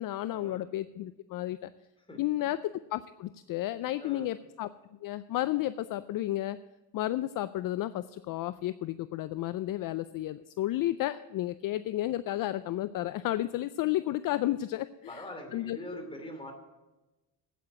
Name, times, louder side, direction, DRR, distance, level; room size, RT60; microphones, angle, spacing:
voice 1, 0.0-1.7 2.2-4.7 5.0-6.6 6.9-15.2 15.5-15.8, left 14 dB, 55° left, 14 dB, 0.5 m, -32 dB
voice 2, 4.0-4.3 15.1-16.5, left 1 dB, 15° left, 3 dB, 2.8 m, -43 dB
9.2 x 8.7 x 8.4 m, 1.1 s
cardioid pair, 115°, 41 cm